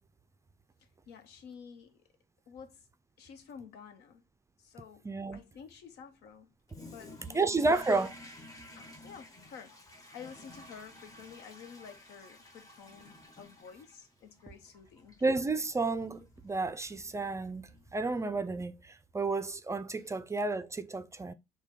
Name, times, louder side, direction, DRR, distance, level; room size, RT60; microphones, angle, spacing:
voice 1, 1.1-2.0 2.5-2.9 3.2-4.2 4.6-6.5 6.8-7.8 8.8-9.8 10.1-15.2 20.0-20.2, left 7 dB, 80° left, 0.9 m, -50 dB
voice 2, 5.0-5.4 7.3-8.1 15.2-21.3, right 3 dB, 15° right, 0.4 m, -31 dB
Toilet flush, 6.7-19.0, left 1 dB, 20° left, 1.1 m, -54 dB
6.2 x 2.2 x 3.7 m
cardioid pair, 110°, 17 cm